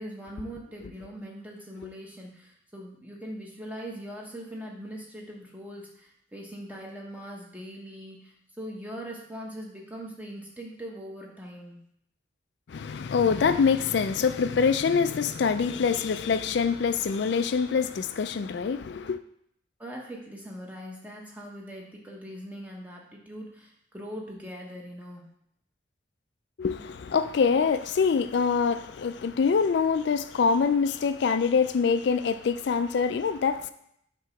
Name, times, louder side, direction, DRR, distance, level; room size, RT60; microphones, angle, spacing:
voice 1, 0.0-11.8 19.8-25.2, equal, 10° right, 1.1 m, -41 dB
voice 2, 12.7-19.2 26.6-33.7, left 5 dB, 60° left, 0.3 m, -25 dB
7.5 x 3.0 x 5.8 m
head